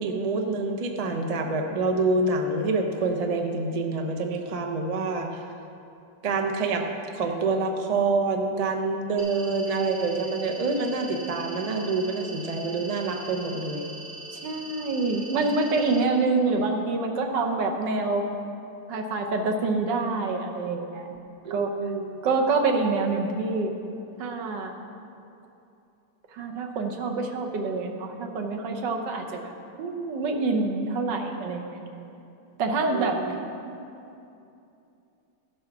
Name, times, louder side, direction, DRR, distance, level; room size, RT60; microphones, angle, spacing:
voice 1, 0.0-5.4 6.2-6.9 7.1-13.9 21.4-22.1 32.9-33.3, right 3 dB, 50° right, 3 dB, 0.4 m, -27 dB
sound 1, 9.2-16.0, right 1 dB, 30° right, 1.5 m, -42 dB
voice 2, 14.3-18.3 18.9-21.1 21.5-21.7 22.2-23.7 24.2-24.7 26.3-29.5 29.8-31.8 32.6-33.2 33.7-33.8, right 3 dB, 90° right, 3 dB, 1.6 m, -26 dB
13.5 x 5.5 x 5.9 m, 2.7 s
omnidirectional pair, 1.9 m